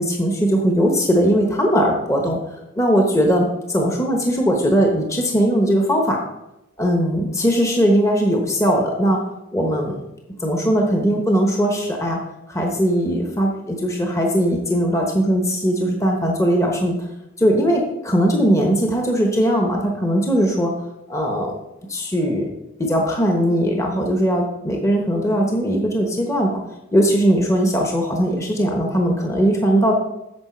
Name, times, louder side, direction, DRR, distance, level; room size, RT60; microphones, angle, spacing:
voice 1, 0.0-2.4 2.8-6.2 6.8-9.2 9.5-10.0 10.4-12.2 12.5-17.1 17.4-20.7 21.1-21.5 21.9-22.5 22.8-26.6 26.9-29.9, equal, 15° left, 1 dB, 1.0 m, -19 dB
8.8 x 6.7 x 4.4 m, 0.89 s
head